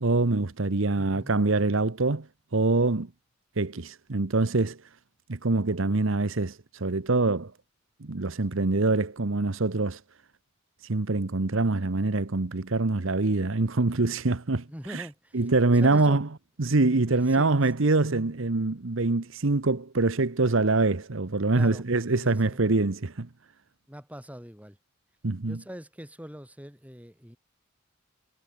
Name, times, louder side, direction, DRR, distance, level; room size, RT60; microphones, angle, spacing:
voice 1, 0.0-2.3 2.5-3.1 3.6-4.8 5.3-7.5 8.0-10.0 10.8-15.0 15.3-16.3 16.6-23.3 25.2-25.6, right 3 dB, 65° right, 1.0 m, -25 dB
voice 2, 0.9-1.3 14.7-15.4 15.7-16.2 17.1-17.7 21.5-21.9 22.1-22.6 23.9-24.8 25.5-27.4, equal, 5° right, 6.4 m, -43 dB
head